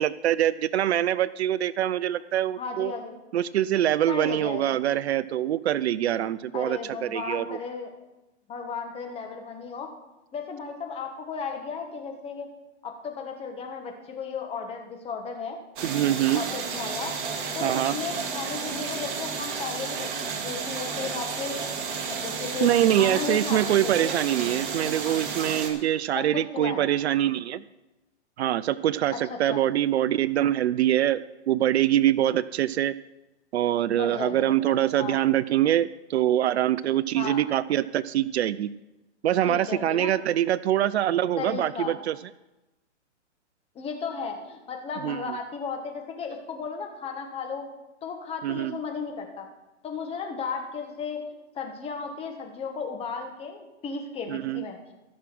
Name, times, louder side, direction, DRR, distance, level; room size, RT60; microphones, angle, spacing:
voice 1, 0.0-2.9 3.3-7.6 15.8-16.4 17.6-18.0 22.6-27.6 28.4-32.9 33.5-38.7 39.2-42.2 45.0-45.4 48.4-48.8 54.3-54.6, right 12 dB, 65° right, 18 dB, 0.5 m, -24 dB
voice 2, 2.6-3.1 4.1-4.8 6.5-7.9 8.5-9.9 10.3-12.5 12.8-15.6 16.3-17.1 17.5-20.1 20.4-24.1 26.1-26.8 29.1-29.6 33.9-35.2 37.1-37.4 39.4-40.1 41.4-41.9 43.7-47.6 48.0-49.5 49.8-51.2 51.5-54.8, left 5 dB, 15° left, 4 dB, 1.3 m, -35 dB
sound 1, 15.8-25.7, right 5 dB, 45° right, 2.0 m, -32 dB
14.0 x 6.2 x 6.1 m, 1.0 s
hypercardioid pair, 135°, 35 cm